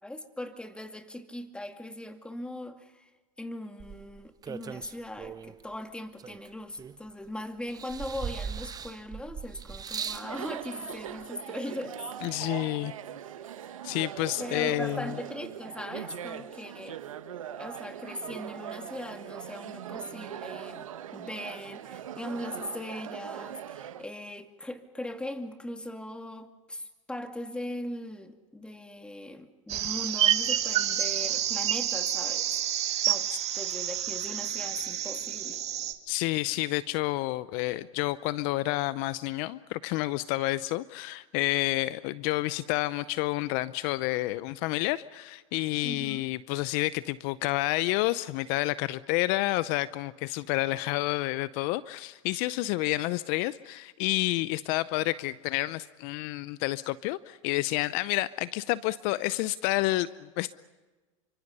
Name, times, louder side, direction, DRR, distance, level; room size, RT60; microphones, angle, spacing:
voice 1, 0.0-3.1 3.4-12.0 14.4-17.0 17.6-32.5 33.0-33.3 33.5-35.6 45.8-46.2, left 1 dB, 5° left, 6 dB, 2.3 m, -39 dB
sound 1, 3.8-5.6 6.2-7.3 7.7-10.3 11.2-11.3, right 7 dB, 25° right, 0.9 m, -39 dB
Chatter, 9.9-24.1, right 10 dB, 85° right, 1.7 m, -41 dB
voice 2, 12.2-12.9 13.8-15.2 36.1-60.5, left 18 dB, 55° left, 17 dB, 0.7 m, -29 dB
sound 2, 29.7-35.9, right 11 dB, 40° right, 2.2 m, -29 dB
29.5 x 25.0 x 5.5 m, 1.2 s
hypercardioid pair, 105°, 17 cm